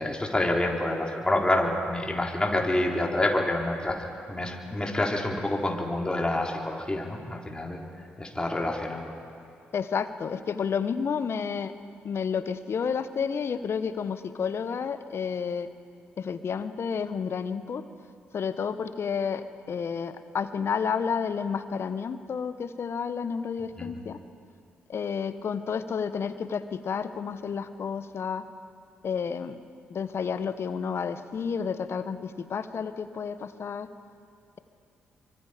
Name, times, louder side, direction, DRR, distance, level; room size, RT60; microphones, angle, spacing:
voice 1, 0.0-7.8 8.2-9.1 23.8-23.9, left 1 dB, 15° left, 0 dB, 4.0 m, -27 dB
voice 2, 9.7-11.7 12.0-15.7 16.2-17.8 18.3-24.2 24.9-28.5 29.0-29.6 29.9-33.9, left 6 dB, 55° left, 12 dB, 1.2 m, -31 dB
24.5 x 23.5 x 5.2 m, 2.5 s
hypercardioid pair, 40°, 5 cm